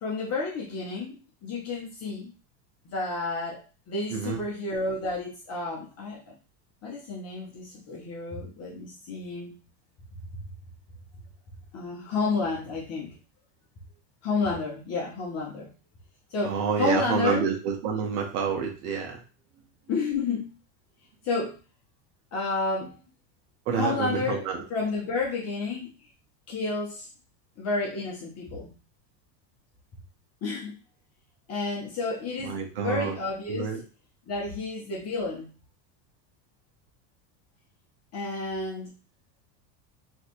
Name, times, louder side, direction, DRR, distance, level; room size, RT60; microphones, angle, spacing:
voice 1, 0.0-2.3 2.8-3.6 3.9-6.2 6.8-9.5 10.3-10.4 11.7-13.1 14.2-15.7 16.3-17.5 19.9-20.5 21.2-21.6 22.3-23.0 23.7-25.9 26.5-27.1 27.6-28.7 30.4-30.7 31.5-33.8 34.3-35.5 38.1-38.9, left 3 dB, 30° left, -4 dB, 0.9 m, -31 dB
voice 2, 4.1-4.4 16.4-19.2 23.7-24.6 32.4-33.1 33.5-33.8, right 6 dB, 70° right, 1 dB, 1.4 m, -28 dB
3.3 x 3.1 x 2.9 m, 0.35 s
supercardioid pair, 155°, 50 cm